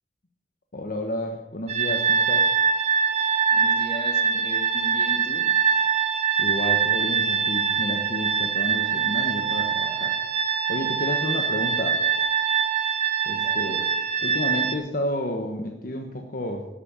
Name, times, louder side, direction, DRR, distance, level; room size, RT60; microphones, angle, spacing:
voice 1, 0.7-2.5 6.4-10.2 10.7-12.0 13.2-13.8 14.2-16.7, left 1 dB, 55° left, 3 dB, 1.2 m, -31 dB
sound 1, 1.7-14.7, right 7 dB, 40° right, 1.1 m, -23 dB
voice 2, 3.5-5.4 13.3-13.8, left 1 dB, 35° left, 4 dB, 2.1 m, -37 dB
13.0 x 8.6 x 7.6 m, 1.1 s
head